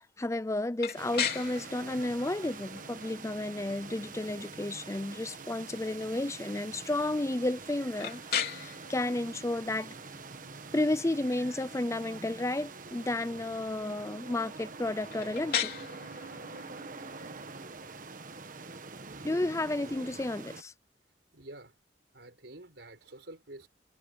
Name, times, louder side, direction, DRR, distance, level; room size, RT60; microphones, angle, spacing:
voice 1, 0.2-9.9 10.7-15.7 19.2-20.7, left 2 dB, 15° left, 0.5 m, -32 dB
sound 1, 0.8-20.5, left 8 dB, 60° left, 3.7 m, -41 dB
sound 2, 1.0-20.6, right 4 dB, 50° right, 1.3 m, -45 dB
voice 2, 10.3-10.9 19.1-19.3 21.1-21.8 22.1-23.7, right 2 dB, 75° right, 4.7 m, -50 dB
head